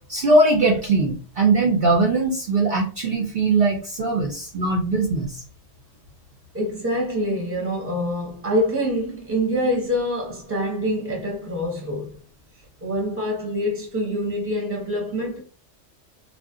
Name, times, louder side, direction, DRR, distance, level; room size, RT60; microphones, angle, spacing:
voice 1, 0.1-5.4, right 2 dB, 55° right, 0.7 m, -20 dB
voice 2, 6.5-12.2 12.8-15.4, equal, 10° right, 0.8 m, -25 dB
2.5 x 2.1 x 3.6 m
omnidirectional pair, 1.3 m